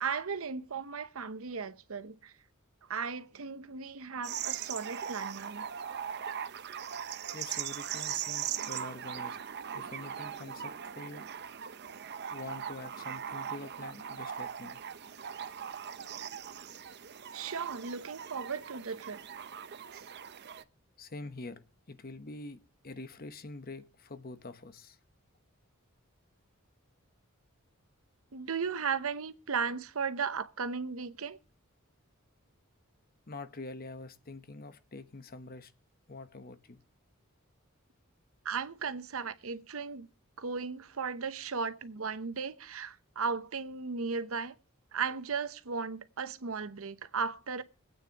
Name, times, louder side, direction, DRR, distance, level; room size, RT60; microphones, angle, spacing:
voice 1, 0.0-2.3 2.9-5.7 17.3-19.2 19.9-20.1 28.3-31.4 38.4-40.1 40.4-44.6 44.9-47.6, right 5 dB, 80° right, 0.8 m, -36 dB
sound 1, 4.2-20.6, right 8 dB, 50° right, 0.7 m, -40 dB
voice 2, 7.3-9.4 9.7-11.3 12.3-14.8 21.0-25.0 33.3-35.7 36.1-36.8, left 2 dB, 45° left, 1.0 m, -45 dB
25.0 x 9.0 x 2.9 m
head